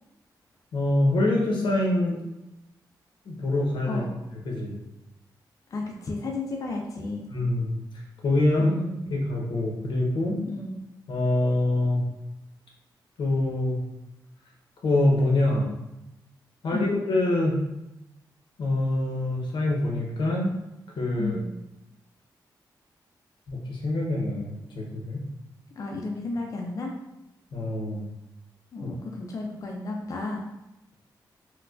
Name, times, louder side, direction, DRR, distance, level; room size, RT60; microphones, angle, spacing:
voice 1, 0.7-2.2 3.2-4.0 4.4-4.8 7.3-7.8 8.2-8.7 9.1-10.4 11.1-12.0 13.2-13.8 14.8-15.7 16.6-17.6 18.6-20.5 21.0-21.3 23.5-25.2 27.5-28.1 28.8-28.9, left 1 dB, 90° left, -1 dB, 0.8 m, -25 dB
voice 2, 3.8-4.2 5.7-7.3 8.6-9.1 10.5-10.8 16.7-16.9 21.2-21.5 25.8-26.9 28.7-30.5, left 2 dB, 45° left, 0 dB, 0.4 m, -33 dB
4.4 x 2.2 x 2.4 m, 0.92 s
wide cardioid pair, 135°, 8 cm